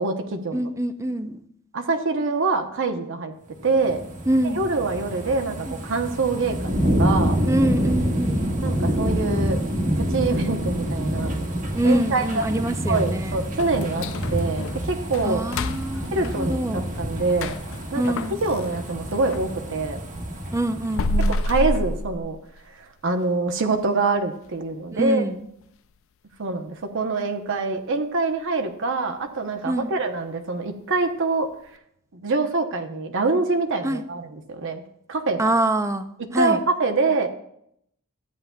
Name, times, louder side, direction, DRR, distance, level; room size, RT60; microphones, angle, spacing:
voice 1, 0.0-0.7 1.7-3.3 3.6-4.0 4.4-7.4 8.6-9.6 9.9-11.4 11.8-12.5 12.9-15.4 16.1-17.6 17.9-18.0 18.4-20.0 21.2-22.4 22.8-25.2 26.4-31.5 32.1-34.8 35.1-35.5 36.2-37.3, right 3 dB, 60° right, 5 dB, 0.8 m, -25 dB
voice 2, 0.5-1.4 4.3-4.7 5.7-5.8 7.5-8.5 11.7-13.4 15.2-16.9 18.0-18.4 20.5-21.4 24.9-25.4 29.6-29.9 33.8-34.0 35.4-36.6, right 1 dB, 15° right, 9 dB, 0.5 m, -25 dB
sound 1, 3.6-21.7 22.2-22.3, equal, 40° right, 1.3 m, -27 dB
sound 2, 13.6-19.5 19.9-22.7 23.1-23.2 23.7-23.8 24.3-24.6 25.0-25.1 25.6-25.7, left 1 dB, 65° left, 0.4 m, -30 dB
13.5 x 9.4 x 2.3 m, 0.72 s
head